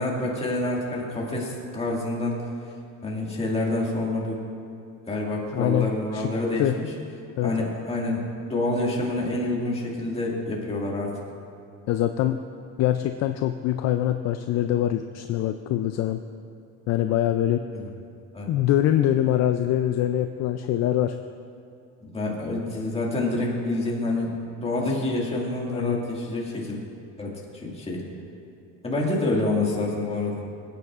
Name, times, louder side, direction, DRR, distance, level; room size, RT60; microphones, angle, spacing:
voice 1, 0.0-2.4 3.0-4.4 5.1-6.9 7.4-8.2 8.5-11.2 17.7-17.9 18.3-18.5 22.0-26.8 27.2-28.0 28.8-30.4, left 2 dB, 20° left, -3 dB, 2.0 m, -27 dB
voice 2, 5.5-5.9 6.1-6.3 6.6-6.8 7.4-7.7 11.9-12.4 12.8-16.2 16.9-17.6 18.5-21.2 25.7-26.0, left 12 dB, 55° left, 8 dB, 0.4 m, -24 dB
20.5 x 9.3 x 2.4 m, 2.5 s
cardioid pair, 125°, 33 cm